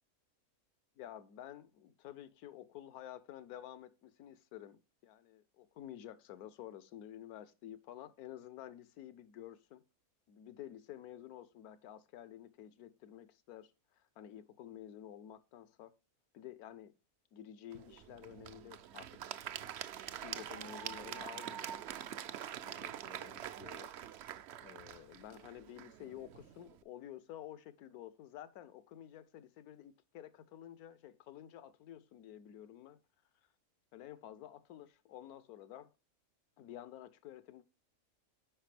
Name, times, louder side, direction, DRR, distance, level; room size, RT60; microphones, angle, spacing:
voice 1, 1.0-9.8 10.3-15.9 16.3-16.9 17.3-19.2 20.2-21.9 22.6-23.9 24.6-33.0 33.9-35.9 36.6-37.6, left 11 dB, 80° left, 1.2 m, -51 dB
Applause / Crowd, 17.7-26.8, right 10 dB, 65° right, 0.7 m, -45 dB
9.3 x 4.9 x 3.3 m
omnidirectional pair, 1.6 m